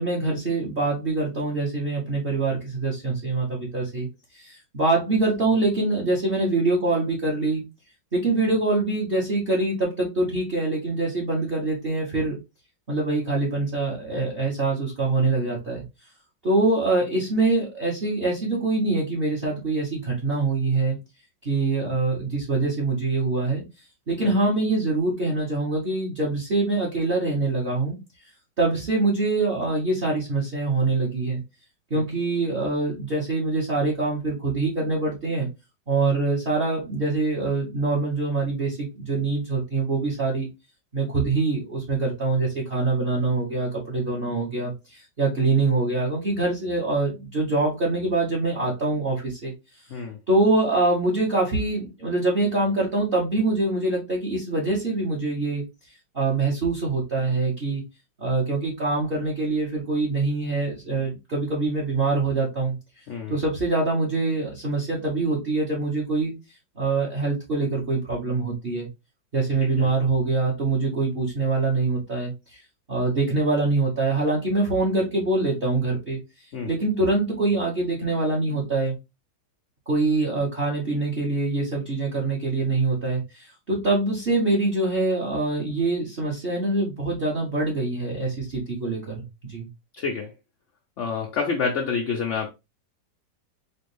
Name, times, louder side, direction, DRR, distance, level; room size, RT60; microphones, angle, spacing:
voice 1, 0.0-4.1 4.3-7.6 8.1-12.3 12.9-15.8 16.4-21.0 21.4-23.6 24.1-28.0 28.6-31.4 31.9-35.5 35.9-40.5 40.9-49.5 50.3-55.6 56.1-57.8 58.2-62.7 63.3-66.3 66.8-68.9 69.3-72.6 72.9-76.2 76.7-79.0 79.9-89.2 89.5-89.7, right 3 dB, 40° right, 1.1 m, -24 dB
voice 2, 63.1-63.4 69.6-69.9 76.5-76.7 89.9-90.3 91.0-92.5, left 5 dB, 70° left, 0.7 m, -28 dB
4.4 x 2.4 x 3.2 m
omnidirectional pair, 1.9 m